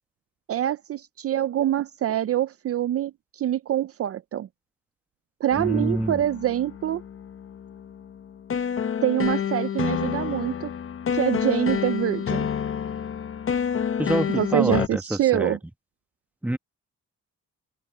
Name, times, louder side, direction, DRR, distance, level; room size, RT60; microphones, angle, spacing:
voice 1, 0.5-4.5 5.4-7.0 9.0-10.7 11.1-12.5 14.3-15.6, right 11 dB, 50° right, 0.6 m, -25 dB
sound 1, 5.5-14.9, left 8 dB, 45° left, 1.0 m, -29 dB
voice 2, 5.6-6.2 14.0-15.6 16.4-16.6, right 1 dB, 5° right, 1.4 m, -26 dB
cardioid pair, 90°, 30 cm